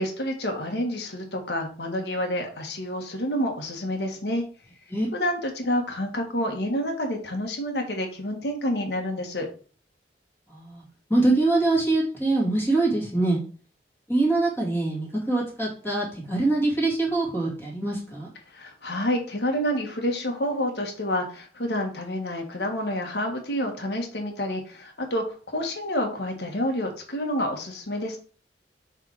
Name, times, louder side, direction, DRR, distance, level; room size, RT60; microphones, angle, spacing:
voice 1, 0.0-4.4 5.1-9.5 18.5-28.2, equal, 65° left, 2 dB, 1.6 m, -28 dB
voice 2, 10.5-10.8 11.1-13.4 14.1-18.3, right 2 dB, 15° left, -4 dB, 2.6 m, -24 dB
6.8 x 3.6 x 4.7 m, 0.40 s
head